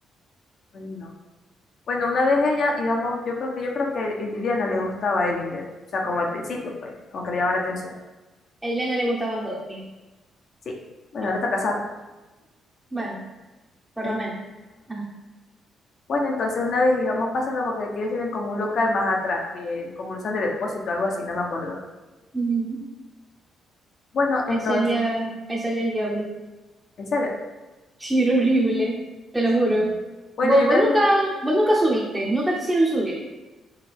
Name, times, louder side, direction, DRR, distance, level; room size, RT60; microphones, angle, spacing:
voice 1, 0.7-1.1 1.9-5.6 5.9-7.9 10.7-10.8 11.1-11.8 14.0-14.2 16.1-21.8 24.1-25.1 27.0-27.3 30.4-31.0, left 2 dB, 60° left, 1 dB, 0.8 m, -25 dB
voice 2, 8.6-9.9 11.2-11.4 12.9-13.2 14.0-14.4 14.9-15.1 22.3-22.8 24.5-26.3 28.0-29.0 29.3-29.9 30.4-33.2, right 1 dB, 15° right, -4 dB, 0.7 m, -23 dB
4.8 x 2.8 x 3.4 m, 1.1 s
cardioid pair, 90°, 0 cm